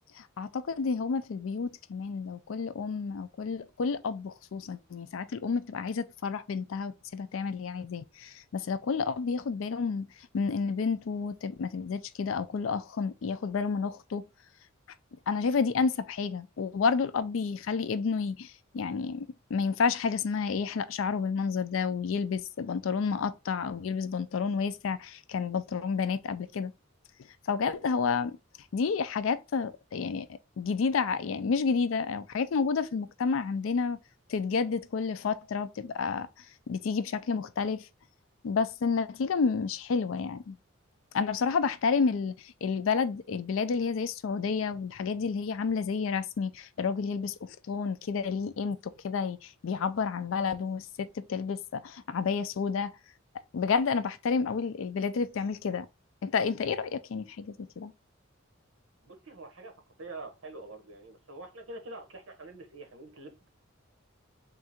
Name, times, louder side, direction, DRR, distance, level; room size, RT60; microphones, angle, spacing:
voice 1, 0.2-10.1 10.3-14.2 15.3-26.7 27.5-28.4 28.7-30.3 30.6-34.0 34.3-36.3 36.7-37.8 38.4-40.6 41.1-52.9 53.5-55.9 56.2-57.9, left 5 dB, 75° left, 0.4 m, -30 dB
voice 2, 59.0-59.7 60.0-63.5, right 2 dB, 70° right, 1.0 m, -45 dB
3.6 x 2.5 x 4.2 m
head